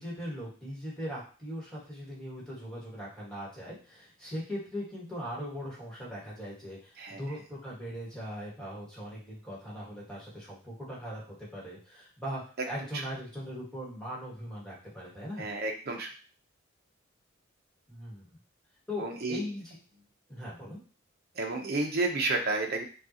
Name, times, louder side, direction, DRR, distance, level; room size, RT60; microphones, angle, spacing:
voice 1, 0.0-15.5 17.9-18.4 18.9-19.7 20.3-20.8, equal, 5° left, -6 dB, 1.5 m, -40 dB
voice 2, 15.4-16.1 19.0-19.4 21.4-22.8, right 3 dB, 50° right, 2 dB, 0.7 m, -31 dB
5.3 x 2.4 x 2.8 m, 0.39 s
head